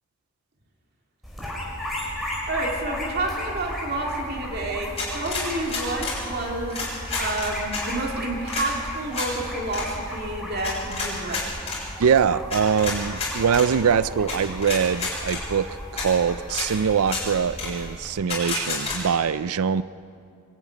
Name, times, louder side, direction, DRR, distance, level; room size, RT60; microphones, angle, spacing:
sound 1, 1.2-18.1, equal, ahead, 4.6 m, -35 dB
voice 1, 2.5-6.9 7.2-11.5, right 2 dB, 45° right, 0 dB, 2.3 m, -29 dB
sound 2, 5.0-6.2 6.7-7.8 8.5-8.7 9.1-9.3 9.7-9.8 10.6-11.8 12.5-13.7 14.3-14.4 14.6-15.4 16.0-16.1 16.5-16.7 17.0-17.2 17.6-17.7 18.3-19.0, left 4 dB, 30° left, 7.2 m, -29 dB
voice 2, 12.0-15.7 15.9-19.8, right 7 dB, 80° right, 16 dB, 0.4 m, -23 dB
24.0 x 11.0 x 9.7 m, 2.5 s
head